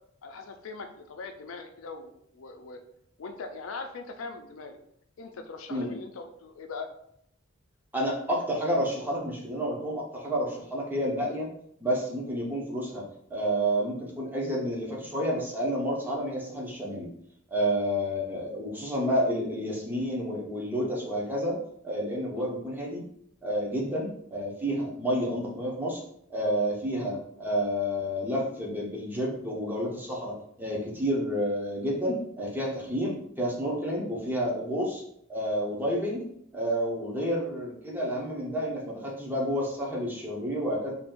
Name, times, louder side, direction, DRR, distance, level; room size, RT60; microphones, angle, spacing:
voice 1, 0.2-2.8 3.2-4.8 5.2-6.9 22.4-22.5, left 4 dB, 85° left, 6 dB, 0.5 m, -41 dB
voice 2, 7.9-11.5 11.8-13.0 13.3-17.1 17.5-23.0 23.4-26.0 26.3-35.0 35.3-36.2 36.5-40.9, equal, 10° right, -3 dB, 0.7 m, -30 dB
2.7 x 2.5 x 3.6 m, 0.71 s
head